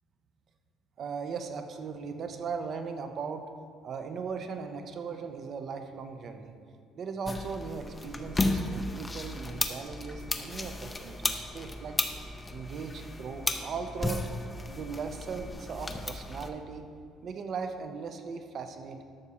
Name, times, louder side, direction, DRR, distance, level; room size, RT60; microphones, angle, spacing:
voice 1, 1.0-3.5 3.8-6.5 6.9-12.0 12.5-14.3 14.7-16.8 17.2-19.0, right 5 dB, 40° right, 7 dB, 0.7 m, -38 dB
sound 1, 7.2-16.5, left 2 dB, 15° left, 0.5 m, -34 dB
12.0 x 4.2 x 7.0 m, 2.3 s
cardioid pair, 160°, 0 cm